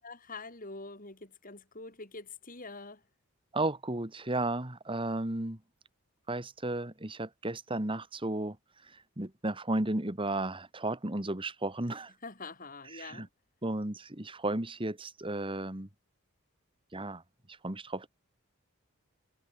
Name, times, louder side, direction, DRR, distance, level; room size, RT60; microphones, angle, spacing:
voice 1, 0.0-3.0 12.2-13.3, left 3 dB, 40° left, 6.0 m, -45 dB
voice 2, 3.5-5.6 6.3-8.6 9.2-12.1 12.9-13.3 13.6-15.9 16.9-17.2 17.6-18.1, right 2 dB, 25° right, 1.9 m, -34 dB
head